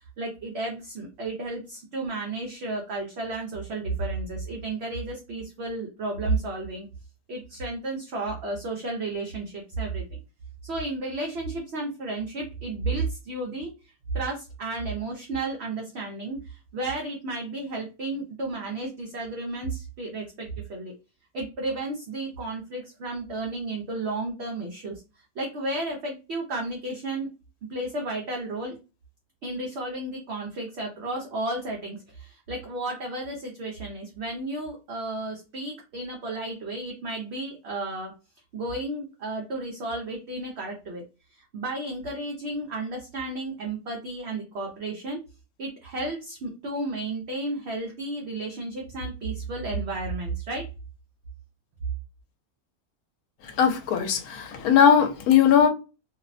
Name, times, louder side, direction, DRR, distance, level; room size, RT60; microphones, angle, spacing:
voice 1, 0.2-6.9 7.3-10.0 10.6-13.7 14.1-20.9 21.3-24.9 25.4-27.3 27.7-28.8 29.4-38.1 38.5-41.0 41.5-45.2 45.6-50.6, right 2 dB, 60° right, 0.7 m, -32 dB
voice 2, 53.6-55.7, left 8 dB, 85° left, 1.1 m, -19 dB
2.7 x 2.1 x 2.4 m
omnidirectional pair, 1.5 m